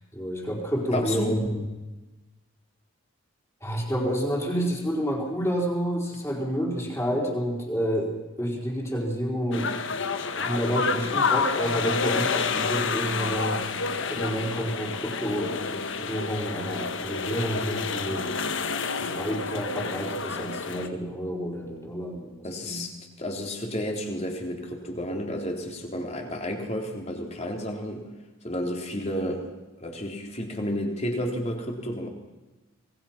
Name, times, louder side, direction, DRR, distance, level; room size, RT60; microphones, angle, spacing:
voice 1, 0.0-1.6 3.6-9.7 10.3-13.6 14.1-15.6 16.0-18.3 19.0-22.8, equal, 10° left, 0 dB, 4.4 m, -29 dB
voice 2, 0.9-1.4 22.4-22.9 23.2-28.1 28.4-29.5 29.8-32.1, equal, 30° left, 2 dB, 3.6 m, -31 dB
sound 1, 9.5-20.9, left 5 dB, 60° left, 1.4 m, -29 dB
26.0 x 20.5 x 5.9 m, 1.1 s
head